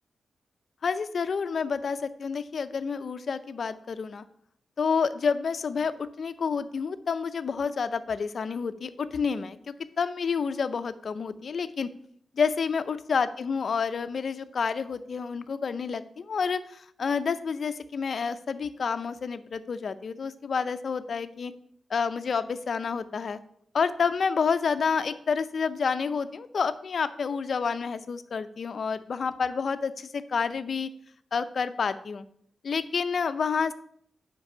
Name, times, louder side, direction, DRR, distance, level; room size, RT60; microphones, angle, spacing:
voice 1, 0.8-4.2 4.8-11.9 12.3-21.5 21.9-23.4 23.7-30.9 31.3-32.2 32.6-33.7, left 5 dB, 45° left, 11 dB, 0.5 m, -29 dB
5.7 x 5.2 x 6.5 m, 0.64 s
wide cardioid pair, 175°, 0 cm